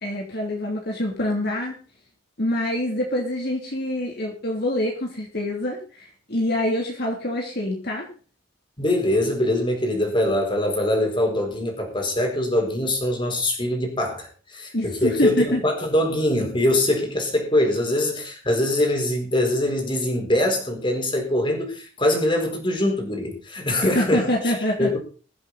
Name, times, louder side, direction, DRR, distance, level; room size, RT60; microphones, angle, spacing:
voice 1, 0.0-1.8 2.4-8.1 14.7-15.6 23.8-25.0, left 1 dB, 55° left, 0 dB, 3.1 m, -25 dB
voice 2, 8.8-24.3 24.8-25.0, left 1 dB, 25° left, 2 dB, 4.5 m, -23 dB
22.5 x 7.9 x 4.2 m, 0.38 s
head